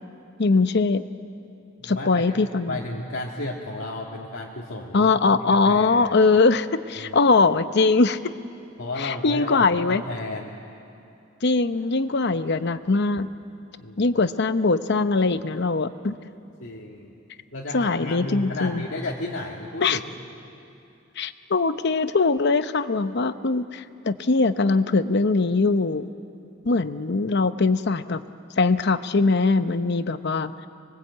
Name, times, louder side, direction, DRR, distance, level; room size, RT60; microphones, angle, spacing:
voice 1, 0.4-1.0 1.8-2.8 4.9-8.2 9.0-10.0 11.4-13.3 14.0-16.1 17.7-18.9 19.8-20.0 21.2-26.1 26.6-28.2 28.6-30.5, left 3 dB, 60° left, 12 dB, 0.8 m, -21 dB
voice 2, 1.8-2.3 2.7-5.1 5.5-6.1 7.0-7.3 8.8-10.5 13.8-14.2 16.6-17.2 17.5-20.0, left 2 dB, 80° left, -3 dB, 2.0 m, -33 dB
26.0 x 22.0 x 8.3 m, 2.6 s
head